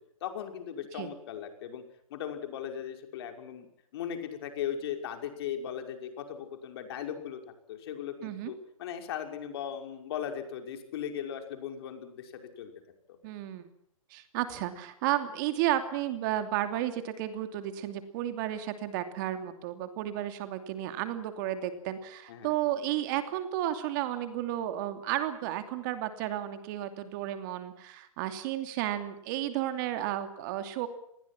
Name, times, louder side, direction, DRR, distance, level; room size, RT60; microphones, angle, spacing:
voice 1, 0.2-1.8 2.1-3.7 3.9-7.4 7.7-12.7 22.3-22.6, left 9 dB, 45° left, 5 dB, 5.6 m, -38 dB
voice 2, 13.2-13.7 14.1-30.9, right 12 dB, 35° right, 9 dB, 2.8 m, -33 dB
28.0 x 21.0 x 6.1 m, 0.75 s
hypercardioid pair, 140°, 17 cm